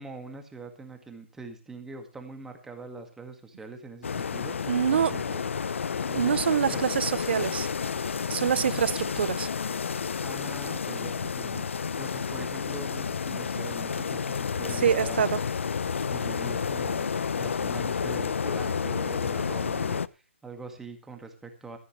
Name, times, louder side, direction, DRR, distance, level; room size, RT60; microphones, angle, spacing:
voice 1, 0.0-5.4 6.1-6.3 6.7-7.0 10.2-11.7 12.0-15.3 16.1-21.8, right 3 dB, 5° right, 1.8 m, -43 dB
sound 1, 4.0-20.1, left 6 dB, 70° left, 0.7 m, -30 dB
voice 2, 4.7-5.1 6.1-7.7 8.3-9.5 14.8-15.4, right 8 dB, 55° right, 0.7 m, -25 dB
17.0 x 14.0 x 3.2 m
hypercardioid pair, 160°, 7 cm